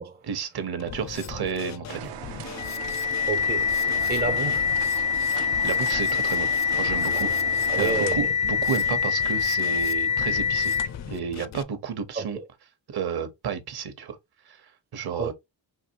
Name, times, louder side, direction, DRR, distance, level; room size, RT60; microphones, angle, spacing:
voice 1, 0.2-2.2 5.3-10.7 11.1-12.4 12.9-14.2 14.5-14.7 14.9-15.3, right 7 dB, 60° right, 1.0 m, -32 dB
Drum kit, 0.8-11.6, left 8 dB, 45° left, 0.4 m, -39 dB
sound 1, 1.9-8.1, right 11 dB, 80° right, 0.7 m, -39 dB
sound 2, 2.6-11.1, left 7 dB, 85° left, 0.8 m, -25 dB
voice 2, 3.3-3.8 4.1-4.8 7.7-8.3 12.1-12.5 15.2-15.3, right 5 dB, 25° right, 0.4 m, -30 dB
5.6 x 2.9 x 2.8 m
wide cardioid pair, 160°, 42 cm